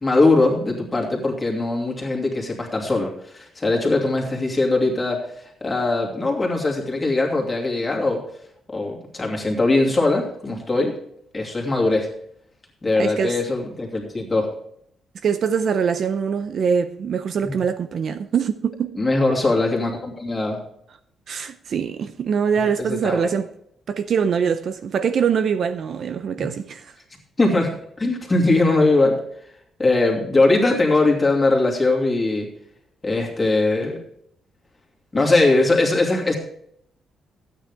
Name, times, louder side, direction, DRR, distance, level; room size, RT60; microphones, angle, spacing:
voice 1, 0.0-8.2 8.7-10.9 11.3-12.1 12.8-14.5 17.4-17.6 19.0-20.6 22.8-23.3 26.4-26.5 27.4-27.7 28.0-29.2 29.8-32.5 33.0-34.0 35.1-36.4, left 2 dB, 15° left, 2.7 m, -20 dB
voice 2, 13.0-13.4 15.2-19.0 21.3-23.5 23.9-26.9, right 7 dB, 50° right, 0.6 m, -23 dB
13.0 x 9.1 x 3.5 m
cardioid pair, 160°, 0 cm